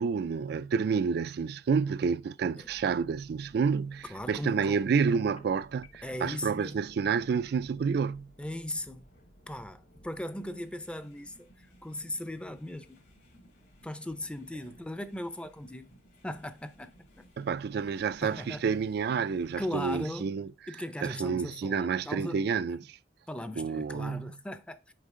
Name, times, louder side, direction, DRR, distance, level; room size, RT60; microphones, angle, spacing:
voice 1, 0.0-8.3 17.4-20.5 21.0-23.0 23.6-24.3, right 6 dB, 65° right, 0.3 m, -29 dB
sound 1, 2.6-20.2, equal, 75° left, 2.8 m, -59 dB
voice 2, 4.1-4.9 6.0-6.8 8.4-9.2 9.5-13.0 13.8-16.9 17.2-17.3 18.2-18.7 19.6-20.4 20.7-22.4 23.3-24.9, left 1 dB, 5° left, 0.5 m, -38 dB
Telephone, 5.0-6.1, left 3 dB, 40° left, 0.8 m, -52 dB
6.7 x 5.0 x 3.6 m
head